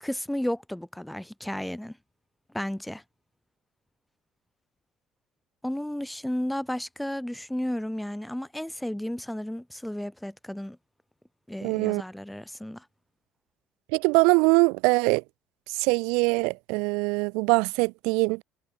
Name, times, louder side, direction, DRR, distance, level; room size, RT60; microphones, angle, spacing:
voice 1, 0.0-1.9 2.5-3.0 5.6-10.8 11.5-12.8, left 1 dB, 5° left, 0.7 m, -33 dB
voice 2, 11.6-12.0 13.9-15.2 15.7-18.4, right 31 dB, 85° right, 0.8 m, -23 dB
cardioid pair, 130°, 0 cm